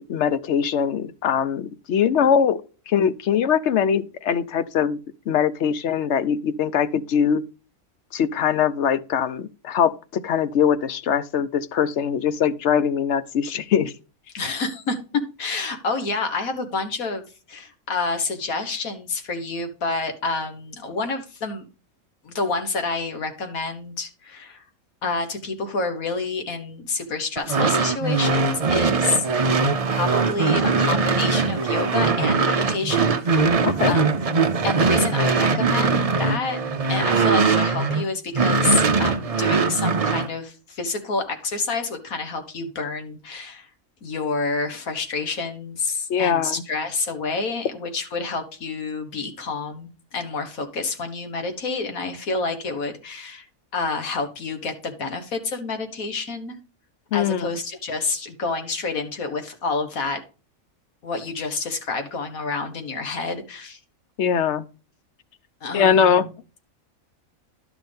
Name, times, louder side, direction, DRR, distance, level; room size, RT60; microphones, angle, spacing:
voice 1, 0.0-2.6 2.9-5.0 5.3-7.4 8.1-13.9 33.6-33.9 46.1-46.6 57.1-57.6 64.2-64.6 65.7-66.3, left 8 dB, 60° left, 0.9 m, -22 dB
voice 2, 14.3-15.0 15.4-17.2 17.5-21.7 22.2-24.6 25.0-29.5 29.9-33.6 33.9-34.3 34.6-36.6 36.9-43.7 44.0-53.5 53.7-56.6 57.1-60.2 61.0-63.8 65.6-66.3, left 3 dB, 75° left, 1.9 m, -28 dB
sound 1, 27.4-38.0 38.3-40.3, right 4 dB, 45° right, 0.5 m, -21 dB
11.5 x 6.1 x 3.5 m
omnidirectional pair, 1.5 m